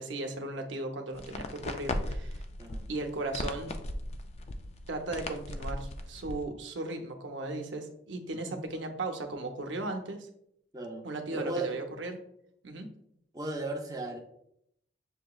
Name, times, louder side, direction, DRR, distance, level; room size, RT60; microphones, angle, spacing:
voice 1, 0.0-2.4 2.9-3.7 4.9-10.3 11.0-12.2 12.6-12.9, right 2 dB, 85° right, 4 dB, 0.7 m, -36 dB
sound 1, 1.1-6.4, left 1 dB, 35° left, 0.3 m, -38 dB
voice 2, 10.7-11.0 11.3-11.8 13.3-14.2, right 2 dB, 20° right, 0 dB, 0.6 m, -36 dB
6.8 x 2.9 x 2.3 m, 0.74 s
head